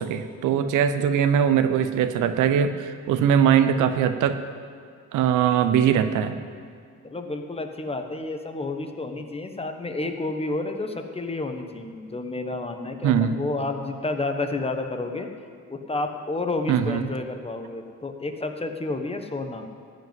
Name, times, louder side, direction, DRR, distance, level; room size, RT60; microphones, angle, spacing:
voice 1, 0.0-4.4 5.1-6.4 13.0-13.4 16.7-17.0, right 8 dB, 85° right, 10 dB, 0.7 m, -21 dB
voice 2, 7.0-15.3 15.7-19.7, left 2 dB, 20° left, 5 dB, 1.2 m, -30 dB
13.5 x 5.4 x 9.3 m, 2.1 s
cardioid pair, 90°, 30 cm